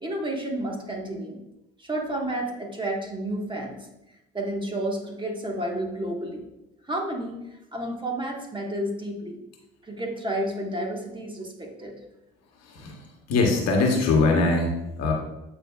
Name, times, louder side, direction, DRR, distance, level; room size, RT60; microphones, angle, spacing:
voice 1, 0.0-1.4 1.8-3.9 4.3-6.5 6.9-7.4 7.7-9.4 9.8-12.0, right 1 dB, 15° right, 0 dB, 1.6 m, -31 dB
voice 2, 12.6-15.1, left 3 dB, 60° left, 1 dB, 1.3 m, -23 dB
8.7 x 4.7 x 2.4 m, 0.92 s
hypercardioid pair, 60°, 29 cm